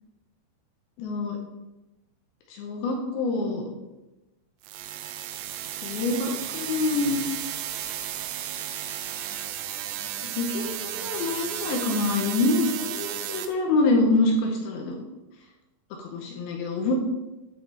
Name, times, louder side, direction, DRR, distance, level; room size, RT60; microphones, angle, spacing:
voice 1, 1.0-1.4 2.5-3.6 5.8-7.2 10.2-15.0 16.0-16.9, left 3 dB, 75° left, 1 dB, 2.4 m, -26 dB
sound 1, 4.6-13.5, right 11 dB, 80° right, 2.4 m, -34 dB
9.8 x 5.0 x 3.9 m, 1.0 s
omnidirectional pair, 5.0 m